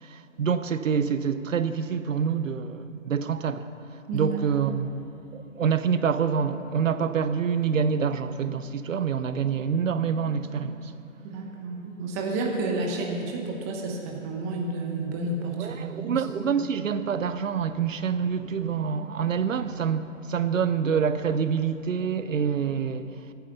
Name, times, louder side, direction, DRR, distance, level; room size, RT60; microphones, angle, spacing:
voice 1, 0.0-3.7 4.1-11.0 15.6-23.3, right 6 dB, 70° right, 0.8 m, -27 dB
voice 2, 11.2-16.2, right 2 dB, 10° right, 0.8 m, -31 dB
15.5 x 9.3 x 6.9 m
hypercardioid pair, 155°, 40 cm